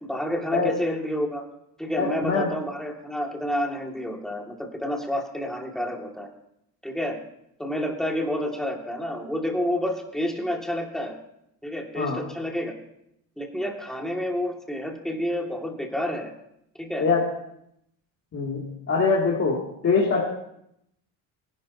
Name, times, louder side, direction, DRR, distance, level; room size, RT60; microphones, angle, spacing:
voice 1, 0.0-1.4 1.8-6.3 6.8-7.2 7.6-11.2 11.6-12.7 13.4-16.3 16.8-17.1, equal, ahead, 1 dB, 2.2 m, -29 dB
voice 2, 2.0-2.5 11.9-12.2 17.0-17.2 18.3-20.3, left 4 dB, 40° left, -5 dB, 2.7 m, -23 dB
19.0 x 11.0 x 2.8 m, 0.77 s
cardioid pair, 90°, 37 cm